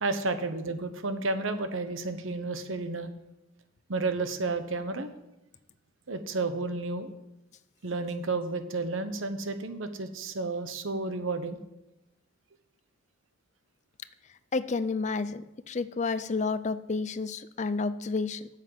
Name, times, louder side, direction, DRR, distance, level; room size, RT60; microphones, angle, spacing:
voice 1, 0.0-3.1 3.9-5.1 6.1-7.1 7.8-11.6, right 3 dB, 85° right, 9 dB, 1.1 m, -31 dB
voice 2, 14.5-18.5, left 4 dB, 35° left, 14 dB, 0.4 m, -30 dB
9.0 x 7.4 x 7.7 m, 0.93 s
head